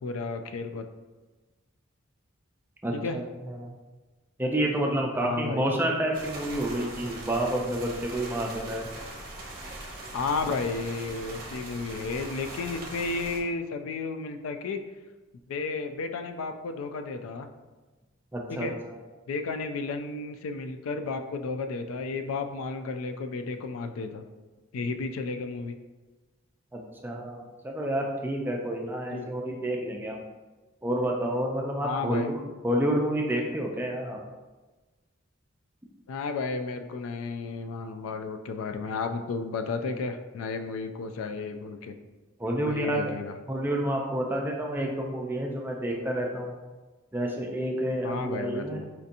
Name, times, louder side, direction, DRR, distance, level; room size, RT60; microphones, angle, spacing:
voice 1, 0.0-0.8 2.9-3.2 5.2-5.6 10.1-14.8 15.5-17.5 18.5-18.7 19.3-24.2 24.7-25.7 29.1-29.3 31.8-32.3 36.1-41.9 42.6-43.3 48.0-48.8, left 4 dB, 85° left, 8 dB, 0.3 m, -33 dB
voice 2, 2.8-3.7 4.4-8.9 18.3-19.0 26.7-30.2 30.8-34.2 42.4-43.1 43.5-46.6 47.1-48.8, right 1 dB, 10° right, 0 dB, 0.3 m, -29 dB
sound 1, 6.1-13.4, right 2 dB, 45° right, 0.6 m, -41 dB
4.4 x 2.7 x 2.5 m, 1.2 s
head